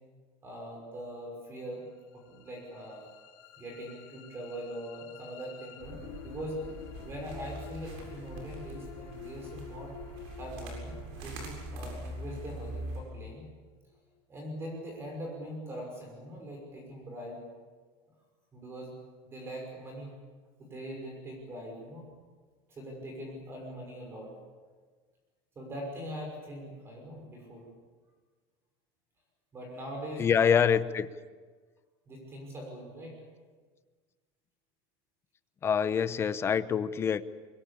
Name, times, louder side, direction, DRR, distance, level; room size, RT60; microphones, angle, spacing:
voice 1, 0.4-1.8 2.1-3.0 3.6-6.6 7.0-9.9 10.4-13.5 14.3-17.4 18.5-18.9 19.2-20.1 20.6-22.1 22.7-24.3 25.6-27.7 29.5-30.6 32.1-33.1, equal, 20° right, 1 dB, 5.9 m, -42 dB
sound 1, 1.9-14.0, left 8 dB, 80° left, 4.3 m, -50 dB
sound 2, 5.8-13.0, right 1 dB, 60° right, 7.6 m, -43 dB
voice 2, 30.2-31.1 35.6-37.2, left 7 dB, 20° left, 14 dB, 0.8 m, -25 dB
24.0 x 21.5 x 8.6 m, 1.4 s
cardioid pair, 170°, 12 cm